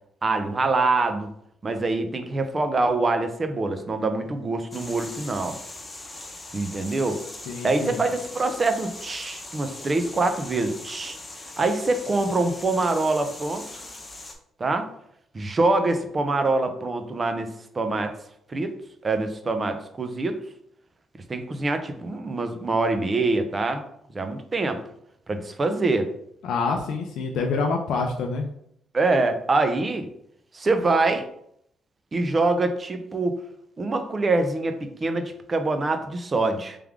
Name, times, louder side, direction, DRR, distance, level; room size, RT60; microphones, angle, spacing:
voice 1, 0.2-1.3 1.6-5.6 6.5-7.2 7.6-11.2 11.6-13.8 14.6-14.9 15.3-18.1 18.5-18.7 19.0-20.4 21.3-23.8 24.1-24.8 25.3-26.1 28.9-30.1 30.5-31.3 32.1-33.4 33.8-36.8, right 3 dB, 30° right, 7 dB, 0.6 m, -25 dB
sound 1, 4.7-14.3, left 2 dB, 25° left, 0.9 m, -40 dB
voice 2, 7.5-8.0 26.4-28.5, left 4 dB, 80° left, 2 dB, 0.5 m, -26 dB
3.5 x 3.3 x 3.5 m, 0.71 s
cardioid pair, 90°, 0 cm